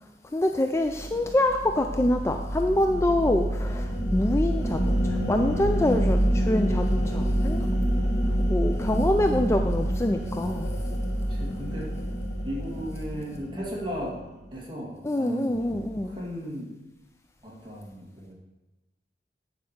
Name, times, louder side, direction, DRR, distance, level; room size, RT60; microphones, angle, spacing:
voice 1, 0.3-7.7 8.4-10.7 15.0-16.2, left 1 dB, 15° left, 5 dB, 0.3 m, -25 dB
sound 1, 0.9-14.4, equal, 60° left, 3.6 m, -27 dB
voice 2, 11.3-12.0 12.4-14.2 14.5-16.8 17.4-18.3, equal, 25° right, -4 dB, 2.2 m, -36 dB
9.3 x 4.8 x 6.6 m, 1.0 s
head